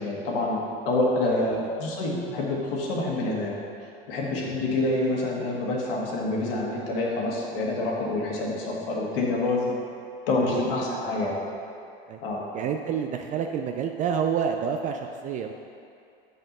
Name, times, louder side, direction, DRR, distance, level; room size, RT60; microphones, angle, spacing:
voice 1, 0.0-3.6 4.1-9.7 10.3-11.4 12.2-12.4, left 2 dB, 60° left, -2 dB, 1.7 m, -27 dB
voice 2, 1.3-1.7 4.3-4.4 10.4-11.2 12.1-12.2 12.5-15.5, right 7 dB, 25° right, 4 dB, 0.3 m, -29 dB
5.6 x 5.2 x 6.5 m, 2.5 s
figure-of-eight pair, 85°, 32 cm